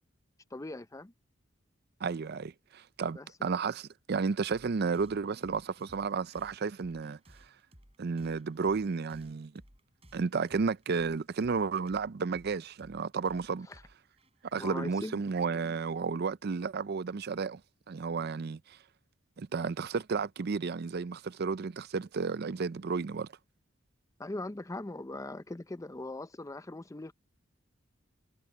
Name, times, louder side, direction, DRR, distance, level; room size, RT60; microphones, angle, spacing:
voice 1, 0.5-1.1 3.1-3.3 14.5-15.1 24.2-27.1, left 2 dB, 15° left, 0.6 m, -40 dB
voice 2, 2.0-7.2 8.0-9.5 10.1-13.7 14.5-17.6 17.9-18.8 19.4-23.3, right 5 dB, 55° right, 0.5 m, -32 dB
sound 1, 4.5-15.6, equal, 30° right, 6.5 m, -60 dB
head